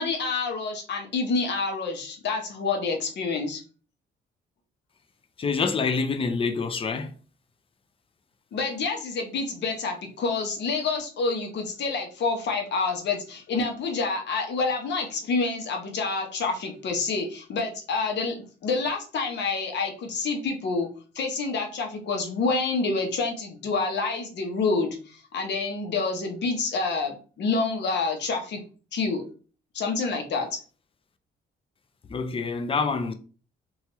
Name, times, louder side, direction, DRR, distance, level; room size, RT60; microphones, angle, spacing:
voice 1, 0.0-3.6 8.5-18.4 18.6-20.9 21.1-28.6 28.9-29.2 29.7-30.6, left 4 dB, 60° left, 0.8 m, -28 dB
voice 2, 5.4-7.1 32.1-33.1, left 4 dB, 30° left, 0.4 m, -26 dB
2.9 x 2.3 x 2.9 m
cardioid pair, 90°, 20 cm